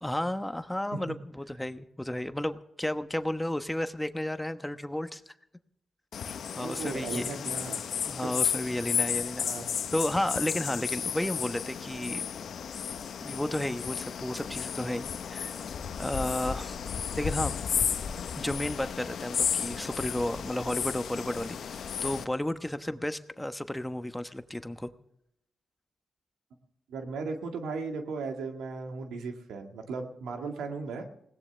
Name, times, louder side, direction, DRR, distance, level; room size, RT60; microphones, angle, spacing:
voice 1, 0.0-5.3 6.6-7.4 8.0-9.5 9.9-12.2 13.2-15.5 15.9-16.8 17.1-17.6 18.4-21.6 22.0-24.9, left 1 dB, 10° left, 10 dB, 1.1 m, -32 dB
sound 1, 6.1-22.2, left 7 dB, 75° left, 0.9 m, -33 dB
voice 2, 6.6-7.9 8.2-8.3 9.3-9.7 26.9-31.0, right 4 dB, 90° right, 4 dB, 1.9 m, -36 dB
20.5 x 17.5 x 3.4 m, 0.78 s
supercardioid pair, 50°, 0 cm